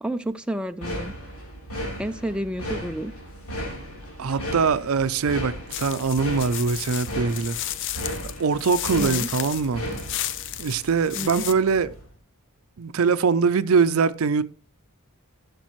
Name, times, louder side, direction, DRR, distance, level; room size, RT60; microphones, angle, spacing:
voice 1, 0.0-1.1 2.0-3.1 9.0-9.3 11.2-11.5, right 1 dB, 5° right, 0.3 m, -30 dB
sound 1, 0.8-12.1, equal, 90° left, 3.5 m, -36 dB
voice 2, 4.2-7.6 8.2-9.8 10.6-11.9 12.8-14.4, right 5 dB, 70° right, 0.5 m, -22 dB
sound 2, 5.7-11.5, left 12 dB, 55° left, 0.5 m, -33 dB
14.5 x 6.7 x 3.1 m
head